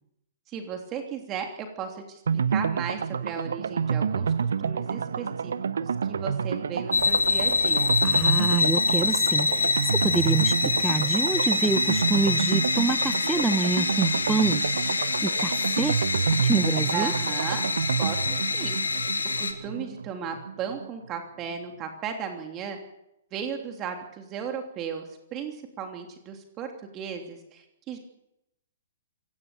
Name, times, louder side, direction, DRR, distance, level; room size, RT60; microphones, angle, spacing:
voice 1, 0.5-2.2 2.5-4.3 4.6-5.5 5.8-7.9 16.9-17.7 18.0-19.0 19.4-22.8 23.3-28.0, right 7 dB, 25° right, 4 dB, 3.1 m, -35 dB
sound 1, 2.3-20.9 21.1-21.2 21.5-21.6, right 6 dB, 65° right, 0.8 m, -28 dB
sound 2, 6.9-19.5, left 4 dB, 75° left, 2.6 m, -26 dB
voice 2, 8.0-14.6 15.2-16.0 16.3-17.1, right 3 dB, 10° right, 17 dB, 0.8 m, -27 dB
27.5 x 17.5 x 7.1 m, 0.85 s
figure-of-eight pair, 115°, 0 cm